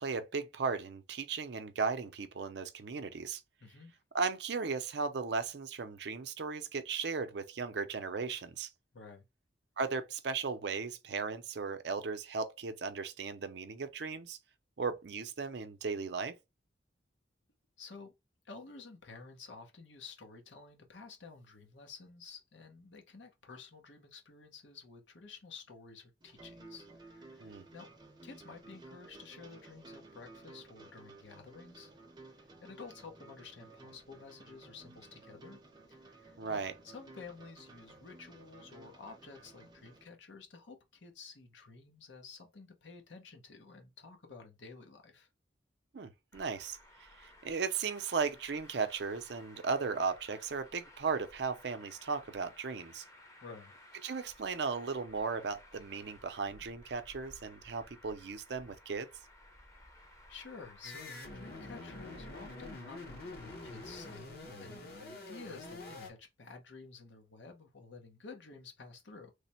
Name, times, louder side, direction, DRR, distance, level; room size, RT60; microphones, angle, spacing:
voice 1, 0.0-3.4 4.1-8.7 9.8-14.4 14.8-16.4 27.4-27.6 36.4-36.7 45.9-53.0 54.0-59.1, right 5 dB, 70° right, 0.5 m, -36 dB
voice 2, 3.6-4.0 8.9-9.3 17.8-18.1 18.4-27.9 28.2-31.9 32.3-35.6 35.9-45.3 53.4-53.8 60.3-69.3, left 4 dB, 85° left, 0.9 m, -52 dB
sound 1, 26.2-40.1, right 2 dB, 25° right, 0.6 m, -55 dB
Traffic noise roadway noise, 46.3-64.2, left 1 dB, 15° left, 0.7 m, -57 dB
sound 2, 60.8-66.1, left 2 dB, 55° left, 0.9 m, -46 dB
3.3 x 2.1 x 4.2 m
head